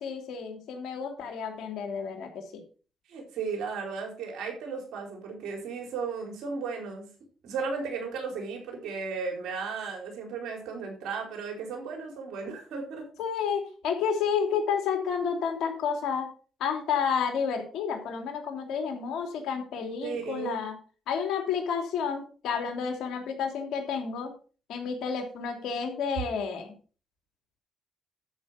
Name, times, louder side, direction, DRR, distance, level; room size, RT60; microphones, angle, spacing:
voice 1, 0.0-2.6 13.2-16.3 16.6-20.7 21.1-24.3 24.7-26.7, left 6 dB, 80° left, 4 dB, 3.0 m, -30 dB
voice 2, 3.1-7.1 7.4-13.0 20.0-20.6, right 5 dB, 80° right, 2 dB, 4.4 m, -35 dB
13.0 x 5.6 x 5.0 m, 0.37 s
cardioid pair, 75°, 0 cm